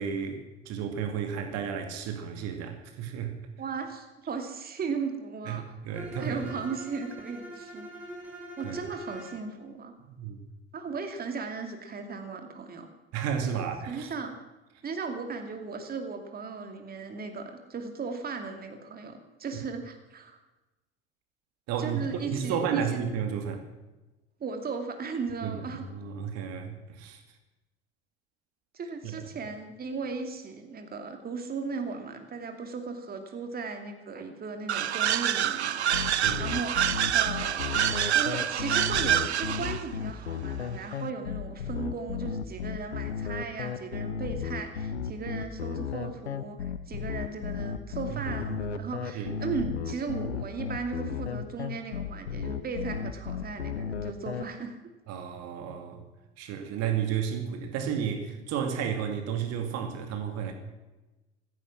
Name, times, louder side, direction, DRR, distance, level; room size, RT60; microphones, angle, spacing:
voice 1, 0.0-3.4 5.5-6.4 8.6-8.8 10.1-10.4 13.1-14.1 21.7-23.6 25.4-27.2 29.0-29.2 36.1-36.4 48.1-48.9 49.1-49.4 55.1-56.0 56.4-60.5, right 7 dB, 50° right, 6 dB, 2.5 m, -32 dB
voice 2, 3.6-5.6 6.2-7.9 8.6-9.9 10.7-12.9 13.6-14.3 14.8-20.4 21.8-23.0 24.4-25.9 28.7-35.8 36.2-36.8 37.1-54.8, right 4 dB, 30° right, 6 dB, 2.5 m, -36 dB
Bowed string instrument, 5.9-9.5, equal, 5° right, 6.0 m, -43 dB
sound 1, 34.7-39.8, right 10 dB, 80° right, 0.7 m, -27 dB
sound 2, 35.9-54.4, left 7 dB, 75° left, 1.1 m, -34 dB
15.5 x 15.0 x 6.1 m, 1.1 s
figure-of-eight pair, 70°, 32 cm